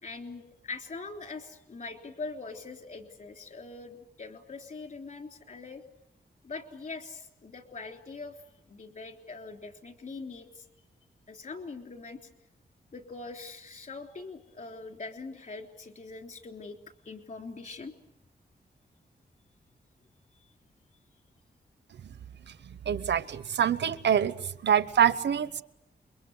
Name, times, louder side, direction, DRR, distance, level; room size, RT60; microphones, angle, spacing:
voice 1, 0.0-5.8 6.4-8.4 8.7-10.7 11.3-12.2 12.9-16.8 17.0-17.9, left 3 dB, 50° left, 4 dB, 3.4 m, -42 dB
voice 2, 22.9-24.3 24.6-25.6, right 9 dB, 85° right, 15 dB, 1.0 m, -25 dB
28.5 x 23.0 x 8.0 m, 0.81 s
wide cardioid pair, 165°, 18 cm